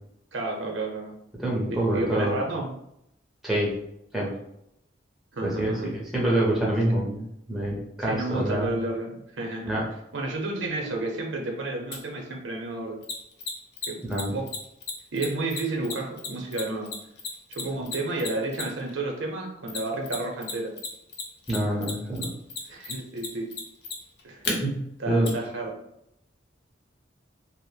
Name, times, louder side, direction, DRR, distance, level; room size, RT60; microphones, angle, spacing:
voice 1, 0.3-1.2 1.7-2.7 5.3-5.9 8.0-9.7 10.1-13.0 13.9-14.0 14.3-14.5 15.1-16.9 17.5-20.7 22.7-23.5 24.2-24.5 25.0-25.8, right 2 dB, 90° right, 1 dB, 0.7 m, -31 dB
voice 2, 1.4-2.4 3.4-3.8 4.1-4.3 5.4-7.2 7.5-8.7 9.7-9.8 14.0-14.3 21.5-22.3 24.6-24.8 25.1-25.3, right 1 dB, ahead, -5 dB, 0.6 m, -26 dB
Mechanisms, 11.9-12.0 13.0-18.9 19.7-20.5 20.8-24.5 25.2-25.3, left 4 dB, 60° left, 0.5 m, -33 dB
2.9 x 2.1 x 3.2 m, 0.78 s
head